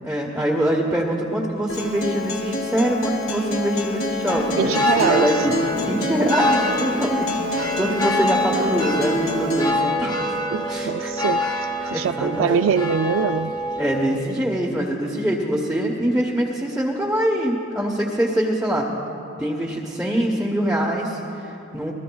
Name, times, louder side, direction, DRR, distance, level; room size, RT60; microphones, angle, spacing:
voice 1, 0.0-4.8 5.1-10.2 10.7-11.1 11.5-12.6 13.8-18.9 19.4-21.9, equal, 5° right, -3 dB, 1.0 m, -24 dB
Acoustic guitar, 1.7-9.7, left 1 dB, 80° left, 2.1 m, -27 dB
sound 1, 4.3-14.2, left 1 dB, 20° left, 1.2 m, -25 dB
voice 2, 4.6-5.3 10.5-11.5 11.9-13.5, right 6 dB, 65° right, 10 dB, 0.3 m, -23 dB
27.0 x 20.0 x 2.3 m, 2.8 s
head